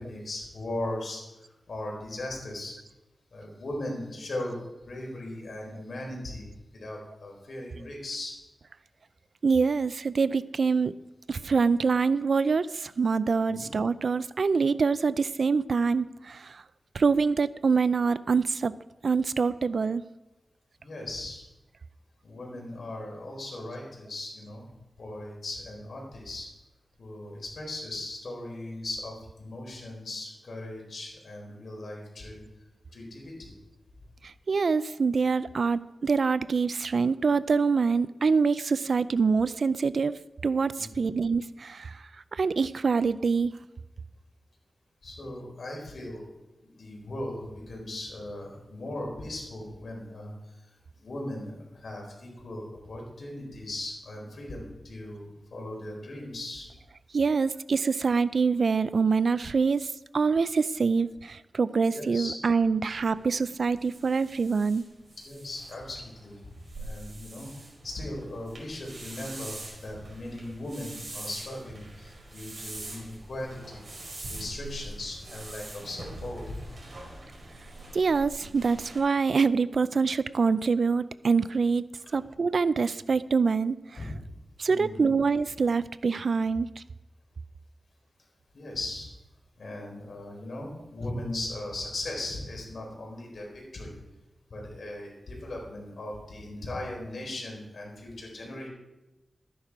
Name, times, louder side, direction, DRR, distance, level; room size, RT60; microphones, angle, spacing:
voice 1, 0.0-2.7 3.3-4.6 4.9-8.3 13.5-13.7 20.8-21.4 22.2-24.6 25.0-26.5 27.0-32.4 32.9-33.5 40.9-41.1 45.0-46.3 46.6-50.6 51.0-56.7 61.9-62.3 65.2-67.5 67.8-73.8 74.3-76.6 82.1-82.2 83.9-84.2 84.7-85.1 88.5-89.1 89.6-93.9 94.5-98.7, left 1 dB, 65° left, -1 dB, 4.4 m, -38 dB
voice 2, 9.4-11.0 11.3-16.6 16.9-18.7 19.0-20.0 34.2-40.1 40.4-42.0 42.3-43.6 57.1-64.8 77.9-81.8 82.1-83.8 84.6-86.8, right 5 dB, 65° right, 16 dB, 0.4 m, -25 dB
sound 1, 62.9-79.0, right 2 dB, 50° right, 4.8 m, -44 dB
13.0 x 10.0 x 4.8 m, 1.0 s
wide cardioid pair, 100°, 0 cm